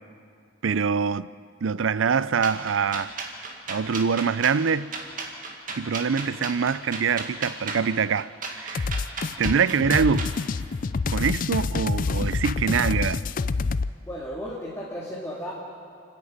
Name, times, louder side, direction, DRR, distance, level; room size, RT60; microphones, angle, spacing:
voice 1, 0.6-1.3 1.6-3.1 3.7-4.9 5.8-8.9 9.4-10.3 11.1-13.3, right 6 dB, 85° right, 0.5 m, -24 dB
sound 1, 2.4-10.4, right 3 dB, 45° right, 2.1 m, -35 dB
sound 2, 8.7-13.9, left 4 dB, 45° left, 0.4 m, -27 dB
voice 2, 14.0-15.5, equal, 15° left, 2.2 m, -34 dB
29.5 x 10.5 x 8.8 m
head